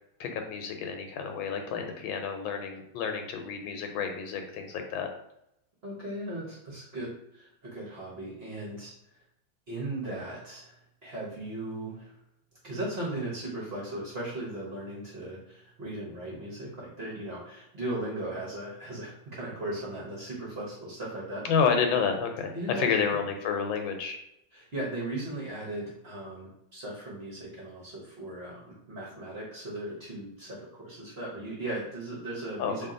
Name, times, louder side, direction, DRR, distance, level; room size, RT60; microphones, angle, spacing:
voice 1, 0.2-5.1 21.4-24.2 32.6-32.9, left 6 dB, 85° left, 5 dB, 1.4 m, -30 dB
voice 2, 5.8-9.2 9.7-12.2 12.6-21.4 22.5-22.9 24.5-32.9, right 1 dB, 45° right, -6 dB, 0.8 m, -37 dB
2.8 x 2.8 x 3.7 m, 0.80 s
omnidirectional pair, 2.1 m